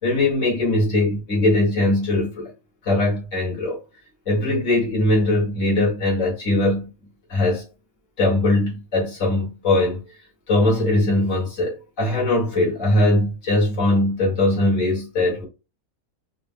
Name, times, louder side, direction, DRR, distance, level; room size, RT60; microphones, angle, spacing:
voice 1, 0.0-2.5 2.9-3.8 4.3-6.9 7.3-7.6 8.2-10.0 10.5-15.5, left 2 dB, 60° left, 2.4 m, -20 dB
5.2 x 3.7 x 2.2 m
omnidirectional pair, 1.5 m